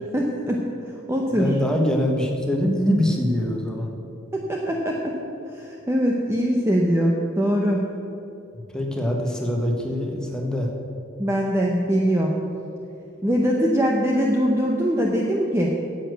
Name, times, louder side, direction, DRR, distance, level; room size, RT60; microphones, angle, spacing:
voice 1, 0.1-0.6 1.1-1.5 4.3-5.2 5.5-7.9 11.2-12.3 13.2-15.7, equal, 15° right, -1 dB, 0.8 m, -22 dB
voice 2, 1.3-3.9 8.5-10.7, left 1 dB, 5° left, 0 dB, 1.4 m, -24 dB
9.8 x 8.2 x 8.0 m, 2.7 s
head